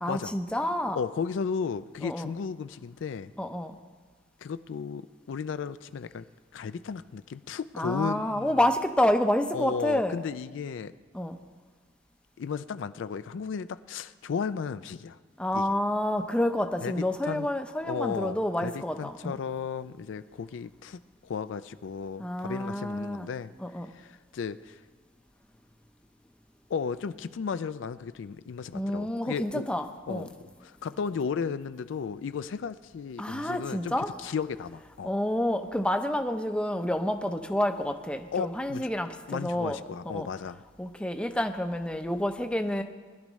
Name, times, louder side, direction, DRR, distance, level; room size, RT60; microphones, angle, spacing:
voice 1, 0.0-1.0 2.0-2.3 3.4-3.8 7.8-10.2 11.1-11.4 15.4-19.3 22.2-23.3 23.6-23.9 28.7-30.3 33.2-34.1 35.0-39.8 40.1-40.3 40.8-42.8, left 1 dB, 5° left, 6 dB, 0.6 m, -29 dB
voice 2, 0.9-3.3 4.4-6.3 6.5-8.7 9.5-10.9 12.4-15.2 15.5-15.7 16.8-17.5 17.8-23.5 23.9-24.8 26.7-29.7 30.1-30.3 30.6-35.1 38.3-38.9 39.3-40.6, left 6 dB, 75° left, 13 dB, 0.4 m, -34 dB
21.0 x 11.5 x 3.1 m, 1.4 s
head